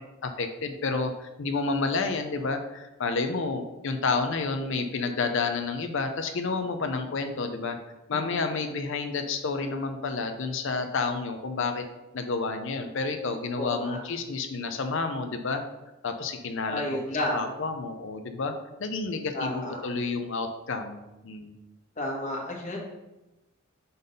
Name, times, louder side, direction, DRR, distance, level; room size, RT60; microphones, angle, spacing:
voice 1, 0.0-7.8 8.1-11.8 12.1-15.6 16.0-17.0 17.3-18.5 18.8-21.5, left 4 dB, 60° left, 6 dB, 0.6 m, -30 dB
voice 2, 13.6-14.0 16.7-17.5 19.3-19.8 22.0-22.8, left 1 dB, 35° left, -2 dB, 1.5 m, -31 dB
5.5 x 3.9 x 5.3 m, 1.0 s
head